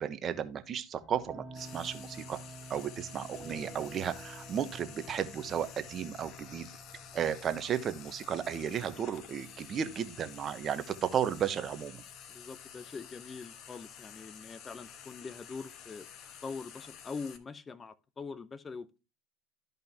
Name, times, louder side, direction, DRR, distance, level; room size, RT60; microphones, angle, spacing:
voice 1, 0.0-2.4 2.7-6.7 7.1-12.0, right 8 dB, 40° right, 1.0 m, -34 dB
sound 1, 0.9-17.4, right 1 dB, 5° left, 1.8 m, -52 dB
Frying (food), 1.5-17.4, left 8 dB, 50° left, 1.2 m, -51 dB
voice 2, 12.3-16.1 16.4-18.9, left 4 dB, 25° left, 0.8 m, -43 dB
12.5 x 5.4 x 2.8 m
hypercardioid pair, 75°, 0 cm